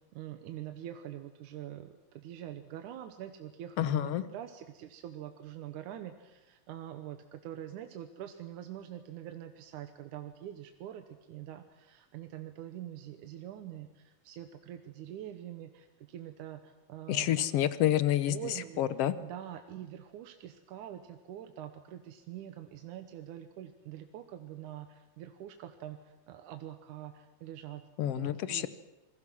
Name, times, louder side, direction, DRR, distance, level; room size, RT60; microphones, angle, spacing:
voice 1, 0.1-17.6 18.2-18.8 19.2-28.7, right 11 dB, 85° right, 7 dB, 2.5 m, -45 dB
voice 2, 3.8-4.2 17.1-18.3 18.8-19.1 28.0-28.7, left 12 dB, 65° left, 13 dB, 1.6 m, -28 dB
26.5 x 21.0 x 6.2 m, 1.0 s
omnidirectional pair, 3.5 m